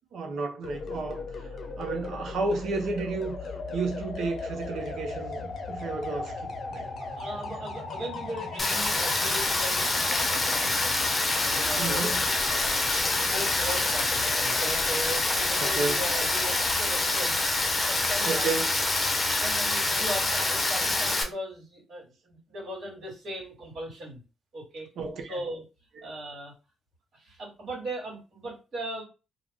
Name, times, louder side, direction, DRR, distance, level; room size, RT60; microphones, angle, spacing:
voice 1, 0.1-1.2 1.7-3.4 3.7-6.9 11.8-12.2 15.6-16.0 18.3-18.7 25.0-25.4, right 3 dB, 70° right, 0.7 m, -32 dB
sound 1, 0.6-16.7 18.7-18.9, left 3 dB, 60° left, 0.6 m, -38 dB
voice 2, 7.0-10.9 11.3-12.2 12.5-17.4 17.9-18.5 19.4-24.2 24.5-24.9 25.3-25.6 26.0-26.5 27.1-29.0, right 1 dB, 55° right, 1.4 m, -38 dB
Rain, 8.6-21.2, left 2 dB, 25° left, 0.7 m, -26 dB
2.4 x 2.1 x 3.5 m
cardioid pair, 90°, 0 cm